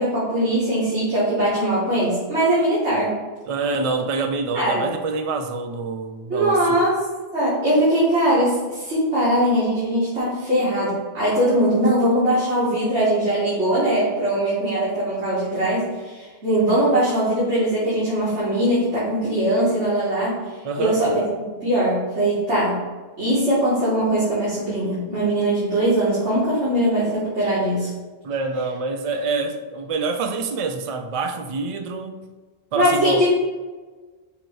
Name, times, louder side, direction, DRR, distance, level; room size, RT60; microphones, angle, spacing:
voice 1, 0.0-3.2 4.5-4.9 6.3-6.9 7.3-20.4 20.8-21.2 21.6-22.8 23.2-27.9 32.7-33.3, right 1 dB, 90° right, -11 dB, 2.3 m, -21 dB
voice 2, 3.4-6.9 20.6-21.0 28.2-32.3 32.7-33.3, right 4 dB, 60° right, 6 dB, 0.3 m, -26 dB
6.5 x 3.1 x 4.6 m, 1.3 s
omnidirectional pair, 1.1 m